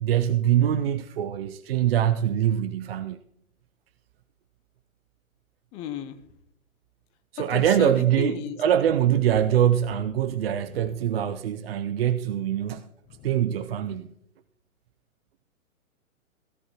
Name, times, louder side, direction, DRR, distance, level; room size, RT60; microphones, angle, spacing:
voice 1, 0.0-3.2 7.3-12.9 13.2-14.1, right 10 dB, 45° right, 0.6 m, -23 dB
voice 2, 5.7-6.2 7.5-8.6, left 8 dB, 15° left, 0.6 m, -33 dB
17.0 x 13.0 x 2.9 m
figure-of-eight pair, 120°, 42 cm